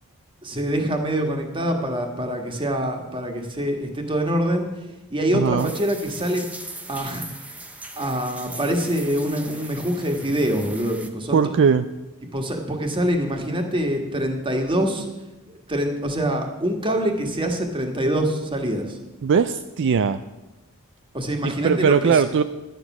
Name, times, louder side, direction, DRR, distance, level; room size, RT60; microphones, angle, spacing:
voice 1, 0.4-4.7 5.1-6.5 6.9-7.3 8.0-11.4 12.2-15.1 15.7-19.0 21.1-22.2, right 1 dB, 25° right, 3 dB, 1.6 m, -25 dB
voice 2, 5.3-5.7 11.3-11.9 19.2-20.2 21.4-22.4, right 6 dB, 55° right, 10 dB, 0.4 m, -19 dB
sound 1, 5.6-11.1, right 2 dB, 5° right, 0.8 m, -39 dB
11.5 x 9.3 x 6.0 m, 1.0 s
head